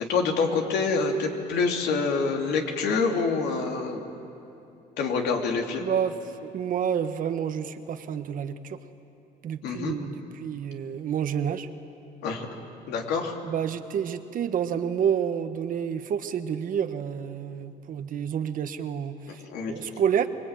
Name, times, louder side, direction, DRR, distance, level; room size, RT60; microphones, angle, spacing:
voice 1, 0.1-4.1 5.0-5.8 9.6-9.9 12.2-12.5 12.9-13.3 19.5-19.7, left 4 dB, 80° left, 2 dB, 3.2 m, -26 dB
voice 2, 5.8-8.8 9.4-11.7 13.4-20.3, right 8 dB, 55° right, 9 dB, 1.3 m, -29 dB
25.0 x 22.0 x 9.2 m, 2.9 s
cardioid pair, 110°, 17 cm